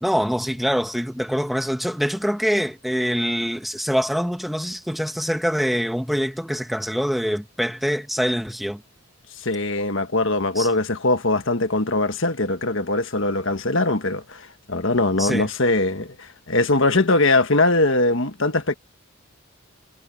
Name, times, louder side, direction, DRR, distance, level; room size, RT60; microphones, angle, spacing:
voice 1, 0.0-8.8 10.5-10.7 15.2-15.5, equal, ahead, 1.6 m, -24 dB
voice 2, 9.4-18.7, left 2 dB, 55° left, 1.5 m, -21 dB
head